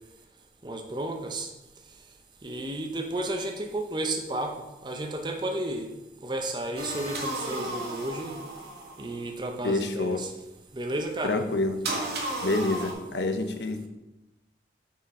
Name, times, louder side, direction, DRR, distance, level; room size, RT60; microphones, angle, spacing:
voice 1, 0.6-1.5 2.4-5.9 6.2-8.4 9.0-10.3 10.7-11.4, right 1 dB, 25° right, 3 dB, 0.7 m, -32 dB
sound 1, 6.8-9.2 11.8-12.9, right 1 dB, 65° right, 1.6 m, -33 dB
voice 2, 9.6-10.2 11.2-11.8 12.4-13.9, left 2 dB, 75° left, 7 dB, 0.7 m, -27 dB
6.7 x 5.6 x 4.2 m, 0.98 s
head